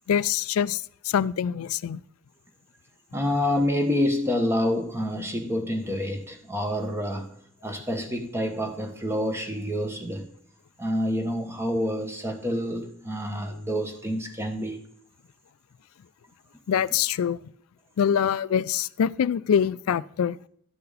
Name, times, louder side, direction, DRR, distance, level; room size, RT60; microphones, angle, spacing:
voice 1, 0.1-2.0 16.7-17.4 18.0-20.4, left 8 dB, 75° left, 0.3 m, -24 dB
voice 2, 3.1-7.4 7.6-10.3 10.8-14.8, left 1 dB, 10° right, 1.2 m, -27 dB
12.5 x 6.8 x 4.0 m
head